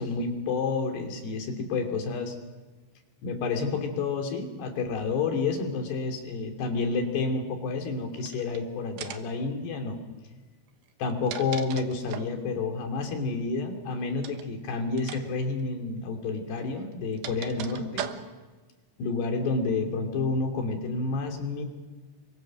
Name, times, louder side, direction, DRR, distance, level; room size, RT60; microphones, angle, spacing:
voice 1, 0.0-2.3 3.2-10.0 11.0-18.1 19.0-21.6, left 4 dB, 70° left, 3 dB, 4.9 m, -29 dB
sound 1, 8.2-8.6 9.0-9.4 10.9-12.4 14.2-14.5 15.0-15.2 15.5-15.6 16.6-18.5, right 9 dB, 70° right, 2.8 m, -39 dB
28.0 x 24.0 x 6.3 m, 1.3 s
omnidirectional pair, 5.1 m